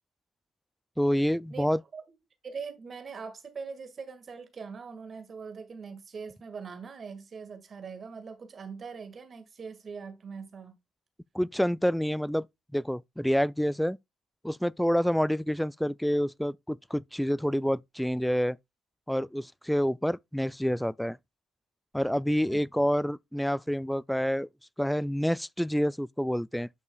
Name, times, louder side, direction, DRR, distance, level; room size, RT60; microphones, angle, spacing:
voice 1, 1.0-1.8 11.3-12.5 12.7-14.0 14.4-18.6 19.1-21.2 21.9-24.5 24.8-26.7, equal, 5° left, 0.3 m, -28 dB
voice 2, 2.4-10.8 22.5-22.6, right 5 dB, 45° right, 1.7 m, -42 dB
10.5 x 5.4 x 2.3 m
hypercardioid pair, 45°, 0 cm